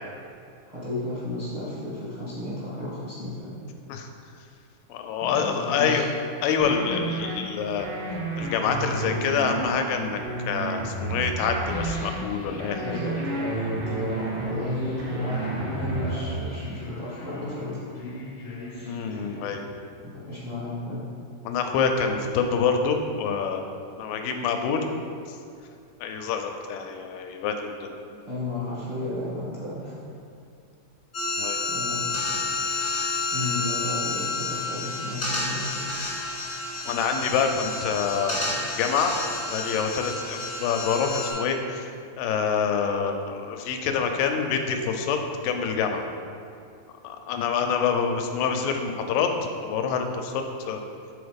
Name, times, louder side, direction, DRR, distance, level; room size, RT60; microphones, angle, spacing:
voice 1, 0.6-3.5 5.2-6.0 12.8-17.8 18.7-19.2 20.3-21.0 28.1-30.1 31.7-32.0 33.3-35.9, left 1 dB, 35° right, -10 dB, 0.6 m, -33 dB
voice 2, 4.9-6.1 6.4-7.9 8.4-10.2 10.5-13.0 18.8-19.6 21.4-23.6 24.0-24.9 26.0-27.9 31.4-31.6 36.8-38.5 38.8-39.1 39.5-41.9 42.2-45.2 45.4-46.0 47.0-49.3 49.6-50.3 50.7-50.8, left 6 dB, 90° left, 5 dB, 2.3 m, -26 dB
sound 1, 6.6-7.4 7.8-9.8 10.2-12.2 12.6-14.6 15.0-16.2, right 2 dB, 75° right, 2.4 m, -31 dB
sound 2, 11.6-19.9, left 1 dB, 75° left, 1.1 m, -39 dB
sound 3, 31.1-41.3, left 3 dB, 55° left, 0.8 m, -30 dB
6.8 x 3.9 x 5.1 m, 2.5 s
omnidirectional pair, 3.9 m